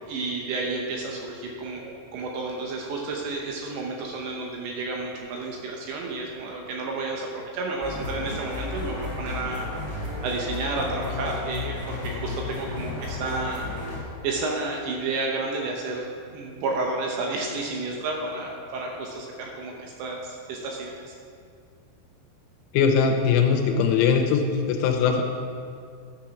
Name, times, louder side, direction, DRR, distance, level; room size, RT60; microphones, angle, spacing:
voice 1, 0.1-9.7 10.2-13.7 14.2-21.1, right 3 dB, 80° right, 0 dB, 3.0 m, -31 dB
sound 1, 7.8-14.0, left 3 dB, 20° right, 0.9 m, -33 dB
voice 2, 22.7-25.2, left 6 dB, 85° left, 4 dB, 3.0 m, -21 dB
9.9 x 5.9 x 5.9 m, 2.2 s
omnidirectional pair, 5.4 m